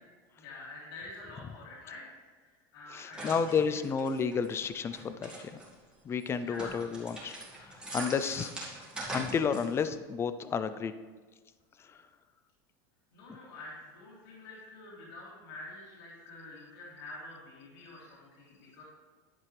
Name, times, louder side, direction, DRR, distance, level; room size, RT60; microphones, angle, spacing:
voice 1, 0.4-2.0 2.7-3.8 6.4-6.8 13.1-18.8, left 2 dB, 75° left, -5 dB, 2.9 m, -47 dB
voice 2, 2.9-5.6 6.0-7.3 7.6-8.5 9.1-10.9, left 6 dB, 20° left, 12 dB, 0.5 m, -31 dB
sound 1, 3.1-5.7 6.2-10.0, right 1 dB, 5° right, 2.2 m, -42 dB
11.0 x 7.4 x 3.4 m, 1.4 s
supercardioid pair, 140°, 12 cm